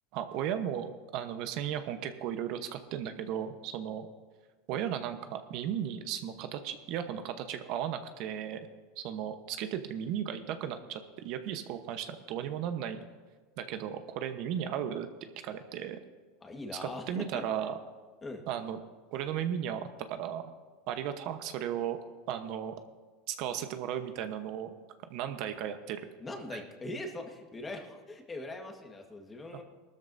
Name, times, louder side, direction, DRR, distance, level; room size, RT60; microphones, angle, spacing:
voice 1, 0.1-4.1 4.7-8.6 9.0-13.0 13.6-15.1 15.4-16.0 17.1-17.7 18.5-18.8 19.1-20.4 20.9-22.0 22.3-22.7 23.3-24.7 25.1-26.0 26.5-26.6, right 9 dB, 55° right, 8 dB, 1.0 m, -35 dB
voice 2, 16.4-17.4 18.2-18.5 26.2-29.6, left 2 dB, 15° left, 3 dB, 1.5 m, -41 dB
19.5 x 13.0 x 2.7 m, 1.4 s
supercardioid pair, 140°, 0 cm